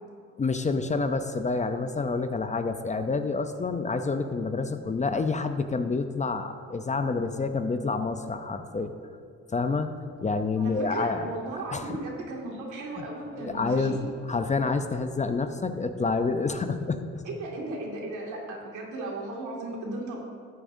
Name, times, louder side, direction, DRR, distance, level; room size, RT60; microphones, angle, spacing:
voice 1, 0.4-8.9 9.5-9.9 10.2-11.3 11.7-12.0 13.4-17.2, left 4 dB, 25° left, 8 dB, 0.5 m, -28 dB
voice 2, 10.6-14.0 17.2-20.2, right 2 dB, 80° right, -2 dB, 2.2 m, -36 dB
13.5 x 8.7 x 2.7 m, 2.2 s
cardioid pair, 90°, 30 cm